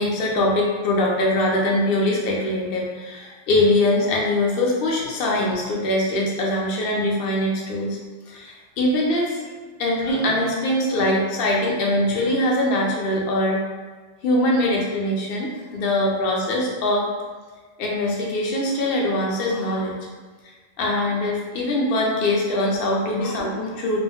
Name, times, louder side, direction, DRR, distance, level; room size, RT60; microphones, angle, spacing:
voice 1, 0.0-8.0 8.3-9.5 9.8-13.6 14.2-17.1 17.8-20.0 20.8-24.0, left 1 dB, 60° left, -2 dB, 0.7 m, -22 dB
2.4 x 2.0 x 3.5 m, 1.4 s
omnidirectional pair, 1.4 m